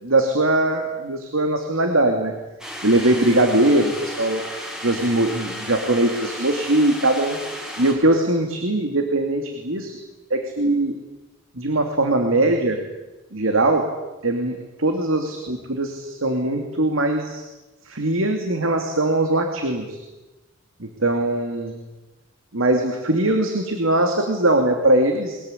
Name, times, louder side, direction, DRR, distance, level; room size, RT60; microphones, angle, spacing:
voice 1, 0.0-2.3 2.8-4.4 4.8-7.4 7.8-9.9 10.3-11.0 11.5-12.8 13.3-13.9 14.2-17.4 17.8-20.0 20.8-21.8 22.5-25.4, right 1 dB, 90° right, 4 dB, 2.8 m, -21 dB
sound 1, 2.6-7.9, equal, 5° right, 6.5 m, -34 dB
22.5 x 21.0 x 10.0 m, 1.1 s
head